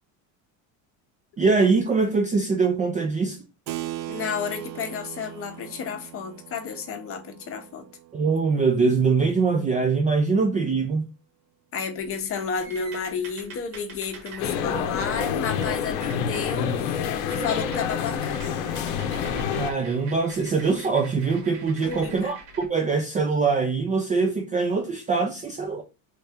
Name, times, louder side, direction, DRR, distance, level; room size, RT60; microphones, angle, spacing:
voice 1, 1.4-3.4 8.1-11.1 19.6-25.8, right 4 dB, 20° right, 0.3 m, -23 dB
Keyboard (musical), 3.7-9.7, right 14 dB, 85° right, 0.5 m, -39 dB
voice 2, 4.1-7.9 11.7-18.4 21.8-22.3, left 6 dB, 35° left, 0.7 m, -32 dB
sound 1, 12.0-16.5 16.8-17.0 17.3-22.7, right 4 dB, 70° right, 1.4 m, -45 dB
sound 2, 14.4-19.7, left 7 dB, 80° left, 0.7 m, -27 dB
3.2 x 2.7 x 3.4 m
cardioid pair, 130°, 41 cm